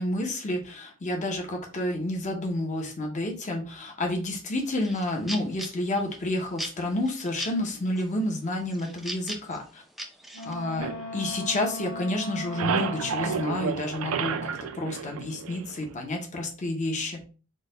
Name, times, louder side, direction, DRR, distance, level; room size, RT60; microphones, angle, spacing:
voice 1, 0.0-9.8 10.4-14.5 14.7-17.2, left 1 dB, 35° left, 2 dB, 0.7 m, -30 dB
sound 1, 4.5-6.2 6.6-7.6 8.0-8.4 8.7-10.6, right 1 dB, ahead, 0.4 m, -38 dB
Wind instrument woodwind instrument, 10.3-13.8, left 1 dB, 65° left, 1.2 m, -38 dB
sound 2, 10.8-11.9 12.2-15.9, right 6 dB, 75° right, 0.4 m, -31 dB
3.8 x 2.1 x 3.8 m, 0.36 s
head